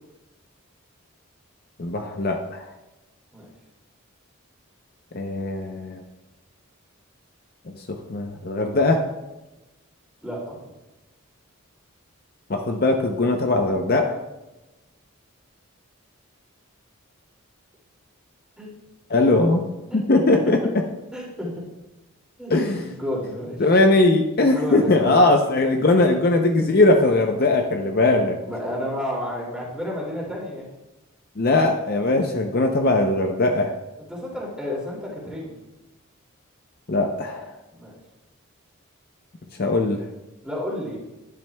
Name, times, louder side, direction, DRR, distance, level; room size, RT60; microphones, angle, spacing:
voice 1, 1.8-2.7 5.1-6.0 7.7-9.1 12.5-14.2 19.1-19.6 19.9-20.8 22.5-22.9 23.6-28.4 31.4-33.7 36.9-37.6 39.5-40.1, left 2 dB, 45° left, 3 dB, 0.6 m, -20 dB
voice 2, 10.2-10.6 18.6-18.7 19.9-20.0 20.5-20.6 21.1-21.7 22.4-23.6 24.4-25.2 28.4-30.7 34.1-35.6 37.7-37.9 40.4-41.0, left 1 dB, 5° right, -4 dB, 2.4 m, -31 dB
10.5 x 10.5 x 2.2 m, 1.0 s
head